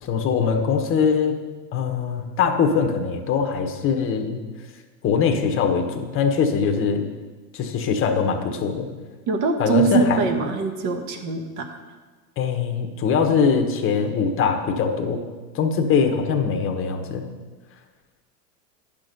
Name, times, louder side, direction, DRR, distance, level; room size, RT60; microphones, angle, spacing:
voice 1, 0.0-1.4 1.7-4.4 5.0-7.0 7.5-8.9 9.6-10.2 12.4-15.2 15.5-17.3, left 6 dB, 25° left, 4 dB, 1.1 m, -22 dB
voice 2, 9.3-11.8, right 4 dB, 35° right, 5 dB, 1.3 m, -23 dB
10.5 x 6.2 x 5.3 m, 1.3 s
hypercardioid pair, 120°, 48 cm